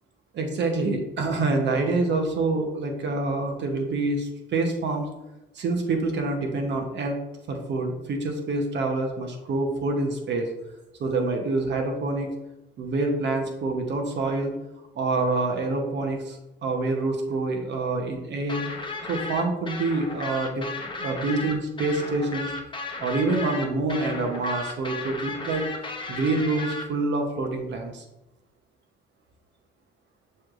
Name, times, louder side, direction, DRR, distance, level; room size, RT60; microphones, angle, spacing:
voice 1, 0.3-5.1 5.5-7.1 7.5-10.5 11.0-12.3 12.8-14.5 14.9-18.6 19.1-22.5 23.0-25.7 26.1-28.0, right 3 dB, 65° right, 3 dB, 1.0 m, -26 dB
sound 1, 18.5-26.8, left 3 dB, 25° left, 0.8 m, -34 dB
6.7 x 3.2 x 2.5 m, 0.95 s
cardioid pair, 90°, 20 cm